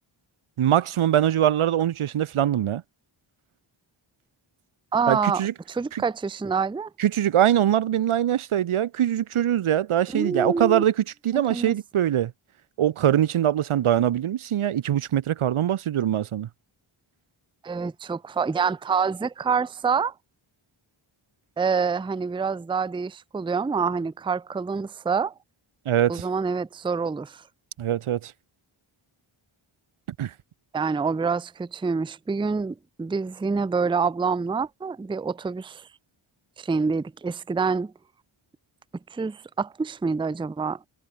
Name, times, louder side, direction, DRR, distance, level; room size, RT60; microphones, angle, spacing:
voice 1, 0.6-2.8 5.1-5.5 5.9-6.0 7.0-12.3 12.8-16.5 25.9-26.2 27.8-28.3 30.2-30.3, right 11 dB, 75° right, 0.7 m, -23 dB
voice 2, 4.9-6.9 10.1-10.8 11.5-11.7 17.6-20.1 21.6-25.3 26.1-27.4 30.7-35.8 36.6-37.9 39.1-40.8, right 5 dB, 10° right, 0.4 m, -26 dB
wide cardioid pair, 75°, 49 cm